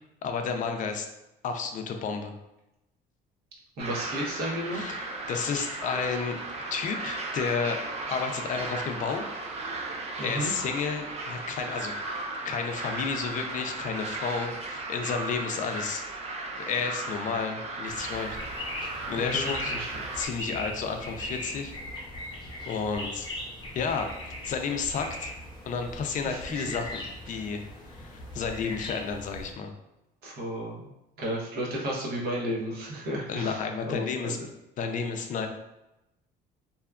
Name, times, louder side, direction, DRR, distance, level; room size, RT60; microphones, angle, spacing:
voice 1, 0.2-1.1 1.4-2.3 4.7-6.4 6.7-7.8 8.1-9.2 10.2-11.9 12.4-16.0 16.6-18.4 18.7-19.7 20.1-21.7 22.7-23.3 23.7-25.3 25.7-27.6 27.9-29.7 33.3-34.4 34.8-35.5, left 5 dB, 50° left, 5 dB, 0.4 m, -31 dB
sound 1, 3.8-20.3, right 2 dB, 40° right, 0.4 m, -36 dB
voice 2, 3.8-4.8 10.2-10.5 19.1-19.5 19.8-19.9 26.2-26.6 30.2-30.9 31.2-33.6 33.9-34.4, equal, 70° right, -3 dB, 0.9 m, -33 dB
sound 2, 17.9-29.5, left 1 dB, 25° left, 0.8 m, -39 dB
2.8 x 2.3 x 2.3 m, 0.92 s
cardioid pair, 110°, 17 cm